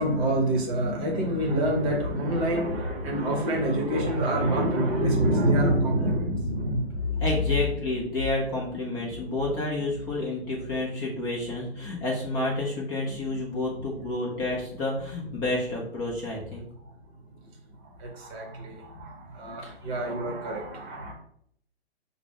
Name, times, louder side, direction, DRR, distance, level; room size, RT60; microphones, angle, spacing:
voice 1, 0.0-7.2 18.0-21.1, right 1 dB, 25° right, -1 dB, 0.9 m, -26 dB
voice 2, 7.2-16.7 19.6-19.7, left 2 dB, 20° left, -3 dB, 0.6 m, -30 dB
5.8 x 2.1 x 3.6 m, 0.67 s
figure-of-eight pair, 125°, 32 cm